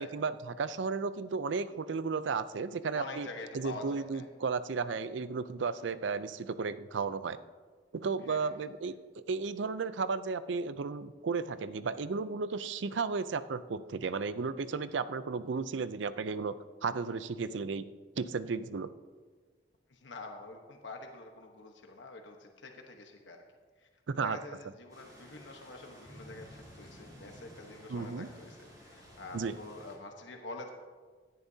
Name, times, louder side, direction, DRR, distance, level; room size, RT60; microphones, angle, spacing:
voice 1, 0.0-3.3 3.5-7.4 7.9-8.9 9.3-16.6 16.8-17.8 18.2-18.9 24.1-24.4 27.9-28.3 29.3-29.6, right 4 dB, 80° right, 14 dB, 0.5 m, -34 dB
voice 2, 2.9-4.3 8.2-8.5 19.9-23.4 23.8-23.9 24.2-30.7, left 2 dB, 80° left, 3 dB, 1.1 m, -46 dB
sound 1, 24.9-30.0, equal, 20° right, 3.7 m, -53 dB
16.5 x 10.5 x 2.8 m, 1.5 s
head